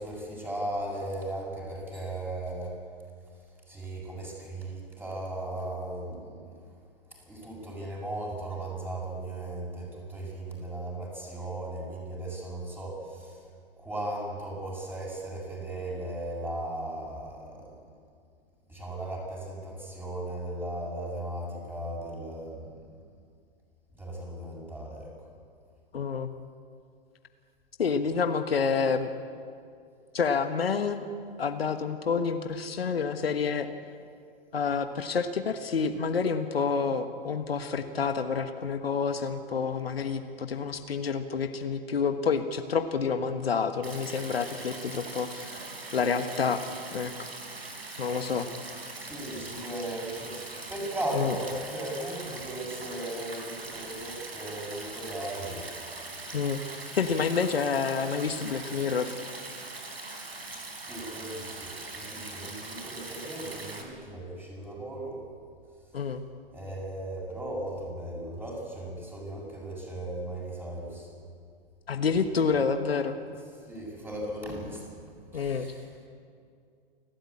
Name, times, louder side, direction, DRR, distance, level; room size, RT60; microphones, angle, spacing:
voice 1, 0.0-2.8 3.7-6.6 7.1-13.4 13.8-17.8 18.7-22.8 24.0-25.1 49.0-50.4 50.7-55.7 60.8-65.2 66.5-71.1 73.7-74.8 75.3-75.9, right 1 dB, 5° right, -2 dB, 7.2 m, -37 dB
voice 2, 25.9-26.3 27.8-29.1 30.1-31.0 31.4-33.7 34.5-45.6 45.9-46.6 46.9-47.3 48.0-48.5 51.1-51.4 56.3-56.6 56.9-59.1 65.9-66.2 71.9-73.2 75.3-75.7, left 5 dB, 75° left, 8 dB, 1.4 m, -28 dB
Stream, 43.8-63.8, right 3 dB, 80° right, 4.1 m, -41 dB
29.0 x 13.0 x 8.6 m, 2.3 s
figure-of-eight pair, 105°, 30 cm